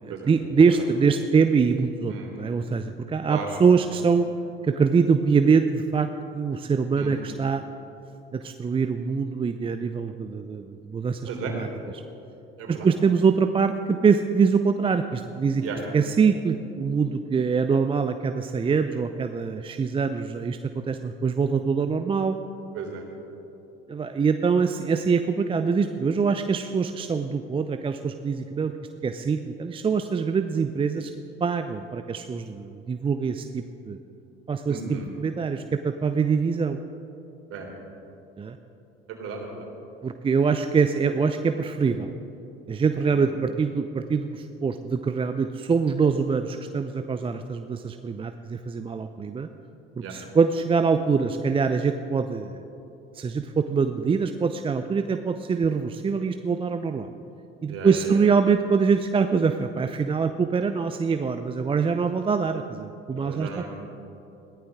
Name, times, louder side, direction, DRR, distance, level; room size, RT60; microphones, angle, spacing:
voice 1, 0.0-4.3 4.6-6.1 6.3-7.6 8.3-11.2 11.5-11.7 12.7-15.6 15.9-22.4 23.9-28.7 29.0-31.1 31.4-34.0 34.5-36.8 38.4-38.6 40.0-42.1 42.7-49.5 50.0-52.6 53.1-57.1 57.6-63.7, right 5 dB, 20° right, 8 dB, 0.6 m, -24 dB
voice 2, 34.7-35.1 37.5-37.7 39.1-39.7 43.1-43.2 50.0-50.2 57.6-58.2 63.1-63.7, right 5 dB, 45° right, 1 dB, 3.5 m, -35 dB
21.5 x 15.0 x 3.7 m, 2.8 s
figure-of-eight pair, 65°, 30 cm